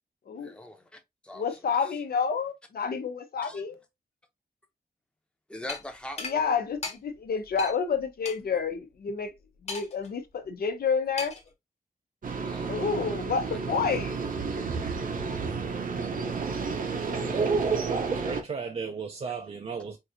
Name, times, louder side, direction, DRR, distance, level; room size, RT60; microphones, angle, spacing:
voice 1, 0.4-2.0 3.4-3.6 5.5-6.6 12.3-12.7 13.5-13.6 13.9-14.0 14.5-14.9 15.3-15.4, left 1 dB, 5° left, 0.7 m, -44 dB
voice 2, 1.3-3.8 6.2-9.3 9.6-11.3 12.7-14.1, left 6 dB, 80° left, 0.8 m, -29 dB
sound 1, 5.7-5.8 6.2-6.4 6.8-7.0 7.6-7.7 8.2-8.4 9.7-10.1 11.2-11.5, left 4 dB, 45° left, 0.9 m, -35 dB
sound 2, 12.2-18.4, right 4 dB, 60° right, 0.8 m, -32 dB
voice 3, 17.2-20.0, right 5 dB, 40° right, 0.4 m, -31 dB
4.6 x 2.7 x 2.6 m
wide cardioid pair, 165°, 16 cm